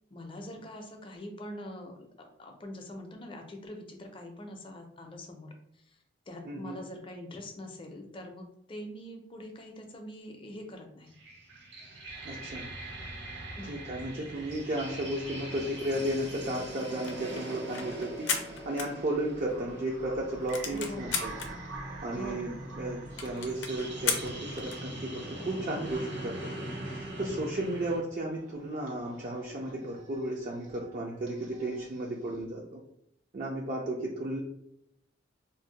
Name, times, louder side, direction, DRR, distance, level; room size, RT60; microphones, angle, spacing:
voice 1, 0.1-5.5 5.9-6.0 6.3-11.2 13.6-13.9 20.7-21.3 22.1-22.5, left 1 dB, 30° left, 3 dB, 0.5 m, -44 dB
voice 2, 6.4-6.8 12.2-12.7 13.6-18.3 18.7-21.4 22.0-32.8 33.3-34.4, right 1 dB, 45° right, -2 dB, 0.4 m, -34 dB
sound 1, 11.1-28.0, right 2 dB, 65° right, 0.9 m, -43 dB
sound 2, 14.3-32.4, equal, 85° right, 1.1 m, -48 dB
sound 3, 16.9-19.6 19.9-20.0 20.2-21.5 22.1-22.2 22.4-22.5 22.8-22.9 23.2-24.9, left 6 dB, 85° left, 0.5 m, -35 dB
2.6 x 2.0 x 3.9 m, 0.75 s
head